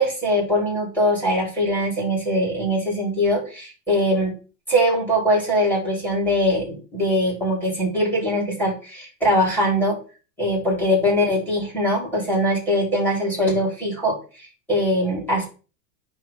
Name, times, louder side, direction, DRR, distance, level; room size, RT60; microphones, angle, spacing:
voice 1, 0.0-4.3 4.7-10.0 10.4-15.5, equal, 5° left, -2 dB, 4.3 m, -22 dB
10.0 x 3.4 x 3.6 m, 0.34 s
hypercardioid pair, 100°, 49 cm